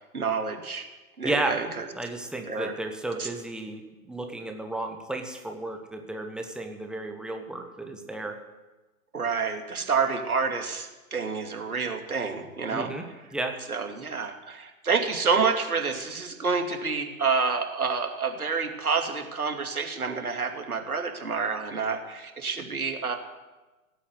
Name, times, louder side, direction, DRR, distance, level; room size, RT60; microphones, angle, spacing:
voice 1, 0.1-0.9 1.2-1.9 2.4-2.7 3.2-3.3 9.1-12.9 13.7-23.2, right 5 dB, 75° right, 4 dB, 2.6 m, -28 dB
voice 2, 1.2-1.6 1.9-8.4 12.7-13.1 13.3-13.5, right 2 dB, ahead, 4 dB, 1.1 m, -33 dB
17.0 x 8.5 x 8.2 m, 1.2 s
figure-of-eight pair, 120°, 44 cm